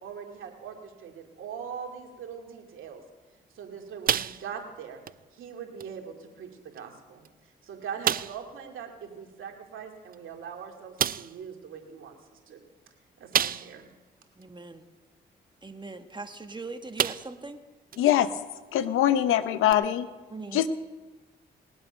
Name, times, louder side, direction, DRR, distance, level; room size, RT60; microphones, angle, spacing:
voice 1, 0.0-3.0 3.5-5.0 5.3-7.2 7.6-12.6 13.2-13.9, right 7 dB, 75° right, 2 dB, 2.3 m, -41 dB
sound 1, 4.1-4.7 5.1-5.2 5.8-5.9 6.8-6.9 7.2-7.3 8.0-8.5 10.1-10.2 11.0-11.4 13.3-13.9 14.4-14.5 16.3-16.5 17.0-17.5 17.9-18.0 19.7-19.8, right 9 dB, 45° right, 0.4 m, -28 dB
voice 2, 14.4-14.9 15.6-17.6 20.3-20.6, right 3 dB, 20° right, 7 dB, 1.6 m, -40 dB
voice 3, 18.0-18.3 18.7-20.1 20.5-20.7, left 11 dB, 85° left, 13 dB, 0.8 m, -23 dB
20.0 x 7.9 x 5.6 m, 1.2 s
supercardioid pair, 50°, 21 cm